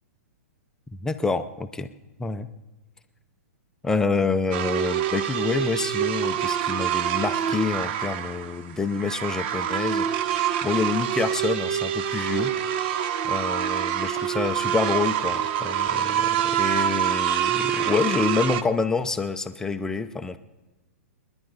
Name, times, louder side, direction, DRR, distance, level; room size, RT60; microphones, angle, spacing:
voice 1, 1.0-1.9 2.2-2.5 3.8-12.5 13.2-20.4, left 4 dB, 5° left, 8 dB, 0.6 m, -27 dB
sound 1, 4.5-18.6, right 9 dB, 45° right, 0.8 m, -26 dB
28.5 x 10.5 x 4.0 m, 1.1 s
hypercardioid pair, 145°, 8 cm